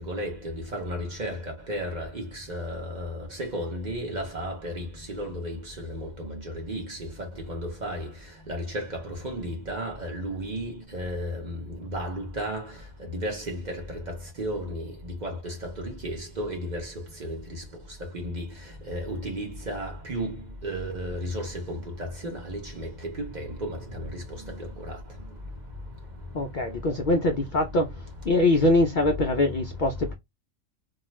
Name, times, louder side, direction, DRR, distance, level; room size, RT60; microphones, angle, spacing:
voice 1, 0.0-8.1 8.5-11.5 11.8-12.6 13.1-14.8 15.2-16.9 17.2-17.4 18.2-18.5 18.9-20.3 20.6-22.9 23.2-24.1, equal, 45° right, 0.7 m, -33 dB
voice 2, 26.3-27.9 28.3-30.1, left 2 dB, 85° left, 0.4 m, -23 dB
2.4 x 2.3 x 3.0 m
omnidirectional pair, 1.4 m